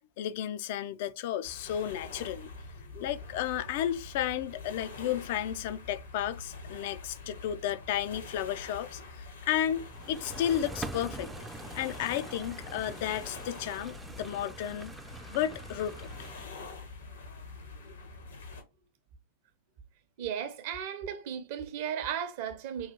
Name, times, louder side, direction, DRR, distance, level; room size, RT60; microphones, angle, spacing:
voice 1, 0.2-2.5 3.0-9.0 9.5-11.3 11.8-14.9 15.3-16.1 16.3-16.5, left 11 dB, 50° left, 0.4 m, -33 dB
sound 1, 1.4-18.6, left 3 dB, 70° left, 0.9 m, -46 dB
sound 2, 9.8-16.8, right 2 dB, 10° right, 0.4 m, -44 dB
voice 2, 20.2-22.9, right 8 dB, 50° right, 0.7 m, -35 dB
5.5 x 2.4 x 2.9 m
figure-of-eight pair, 90°, 0 cm